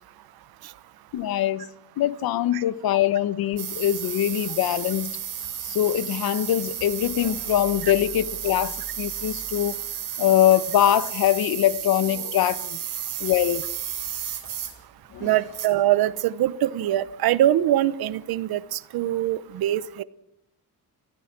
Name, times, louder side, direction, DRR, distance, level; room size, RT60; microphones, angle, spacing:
voice 1, 1.1-1.7 2.0-5.2 5.6-9.8 10.2-12.8 13.2-13.7 15.1-15.3, left 12 dB, 80° left, 1.1 m, -23 dB
sound 1, 3.6-14.8 15.3-15.7, right 9 dB, 60° right, 4.7 m, -33 dB
voice 2, 15.2-20.0, right 13 dB, 85° right, 1.1 m, -23 dB
30.0 x 15.5 x 6.1 m
cardioid pair, 170°, 36 cm